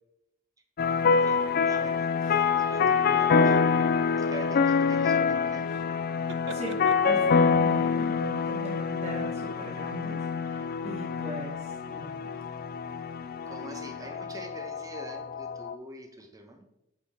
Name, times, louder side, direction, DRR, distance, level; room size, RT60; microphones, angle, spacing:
sound 1, 0.8-15.7, left 5 dB, 45° left, 0.4 m, -26 dB
voice 1, 1.1-3.6 4.2-5.7 13.5-16.6, right 2 dB, 15° right, 4 dB, 0.9 m, -45 dB
sound 2, 1.2-1.5 2.2-2.5 3.0-3.8 5.6-5.9 6.2-7.5, right 4 dB, 60° right, 0.5 m, -46 dB
voice 2, 6.5-12.3, right 1 dB, 35° right, -3 dB, 2.0 m, -39 dB
9.1 x 4.3 x 4.3 m, 0.85 s
head